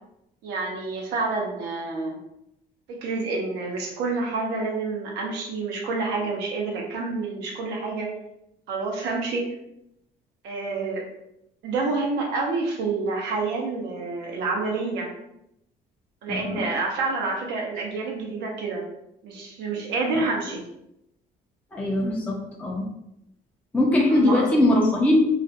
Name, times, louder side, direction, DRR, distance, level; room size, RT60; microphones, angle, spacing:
voice 1, 0.4-2.2 2.9-8.1 8.7-9.4 10.4-11.0 11.6-15.1 16.2-18.8 19.2-20.6 24.1-24.7, right 3 dB, 85° right, -1 dB, 0.6 m, -28 dB
voice 2, 16.3-16.7 20.1-20.2 21.7-22.9 23.7-25.2, left 1 dB, 10° left, -2 dB, 0.4 m, -21 dB
2.4 x 2.1 x 2.6 m, 0.81 s
cardioid pair, 110°, 17 cm